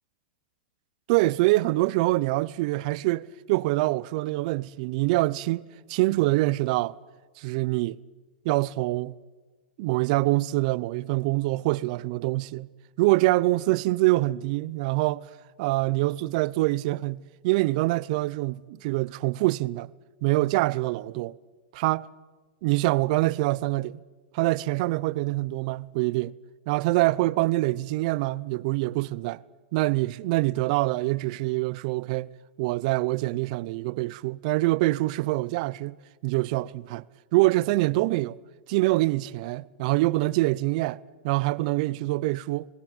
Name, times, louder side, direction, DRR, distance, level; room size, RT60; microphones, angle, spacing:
voice 1, 1.1-5.6 5.9-6.9 7.4-8.0 8.4-9.1 9.8-12.7 13.0-15.3 15.6-19.9 20.2-21.3 21.7-22.1 22.6-24.0 24.3-26.3 26.7-29.4 29.7-32.3 32.6-36.0 36.2-37.0 37.3-38.4 38.7-42.7, right 20 dB, 50° right, 0.6 m, -25 dB
19.5 x 16.0 x 8.9 m
hypercardioid pair, 135°, 5 cm